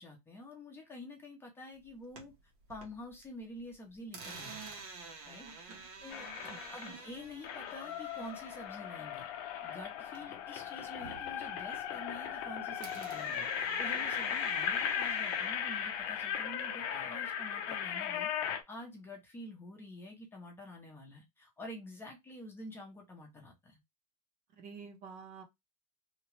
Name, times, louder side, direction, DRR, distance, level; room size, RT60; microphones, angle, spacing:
voice 1, 0.0-2.3 2.7-4.7 5.3-6.3 6.7-9.3 9.6-23.8, left 1 dB, 10° left, 0.8 m, -48 dB
sound 1, 1.8-3.3 3.6-10.5 10.8-12.5 12.8-16.3, right 4 dB, 65° right, 1.2 m, -50 dB
sound 2, 6.1-7.0 7.4-18.6, left 8 dB, 50° left, 0.6 m, -37 dB
voice 2, 24.6-25.4, right 5 dB, 45° right, 0.9 m, -48 dB
2.8 x 2.3 x 3.1 m
supercardioid pair, 145°, 20 cm